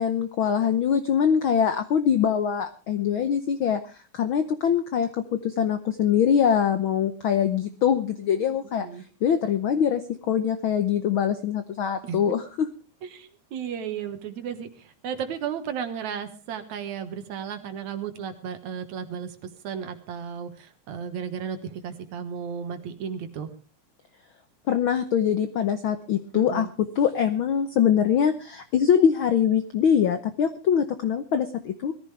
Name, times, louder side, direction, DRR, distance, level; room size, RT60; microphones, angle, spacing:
voice 1, 0.0-3.8 4.1-5.1 5.4-8.9 9.2-10.0 10.3-12.7 24.7-26.7 27.0-31.9, left 8 dB, 75° left, 9 dB, 1.2 m, -23 dB
voice 2, 13.0-19.4 19.6-23.5 26.3-26.7, right 7 dB, 70° right, 8 dB, 2.7 m, -34 dB
20.5 x 14.5 x 3.3 m, 0.34 s
omnidirectional pair, 3.4 m